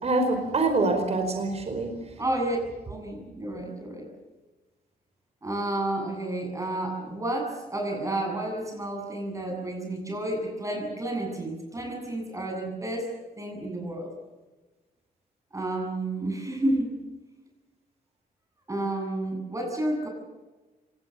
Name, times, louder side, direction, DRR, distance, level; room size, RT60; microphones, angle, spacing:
voice 1, 0.0-2.1, right 2 dB, 40° right, 5 dB, 4.9 m, -25 dB
voice 2, 2.2-2.6 2.8-4.1 5.4-14.1 15.5-17.0 18.7-20.1, right 1 dB, 20° right, 2 dB, 8.0 m, -31 dB
25.5 x 19.5 x 7.4 m, 1.2 s
cardioid pair, 105°, 16 cm